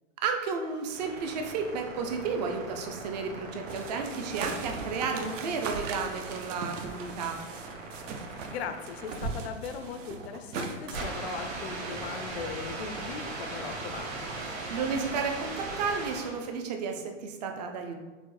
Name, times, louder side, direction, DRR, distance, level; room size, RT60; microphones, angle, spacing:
voice 1, 0.2-7.4 14.4-18.0, right 5 dB, 35° right, 4 dB, 0.4 m, -32 dB
sound 1, 0.6-16.5, right 3 dB, 55° right, 1.3 m, -39 dB
sound 2, 3.7-8.6 8.9-11.1, right 4 dB, 70° right, 0.7 m, -39 dB
voice 2, 8.5-14.3, left 6 dB, 55° left, 8 dB, 0.5 m, -39 dB
5.9 x 2.1 x 3.1 m, 1.2 s
hypercardioid pair, 150°, 38 cm